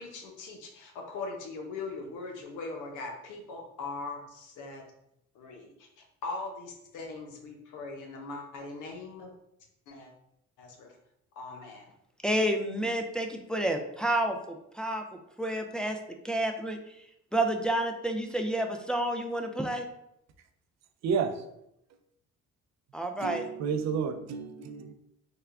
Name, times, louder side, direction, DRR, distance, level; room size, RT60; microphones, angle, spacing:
voice 1, 0.0-4.8 5.3-5.9 6.2-9.3 9.9-10.1 10.6-10.9 11.4-11.9, left 3 dB, 90° left, 0.8 m, -40 dB
voice 2, 12.2-15.0 15.4-16.0 16.2-16.8 17.3-19.9 22.9-23.5, right 1 dB, 5° left, 0.3 m, -29 dB
voice 3, 21.0-21.4 23.2-24.9, right 6 dB, 60° right, 0.5 m, -31 dB
3.6 x 2.2 x 3.3 m
cardioid pair, 90°, 30 cm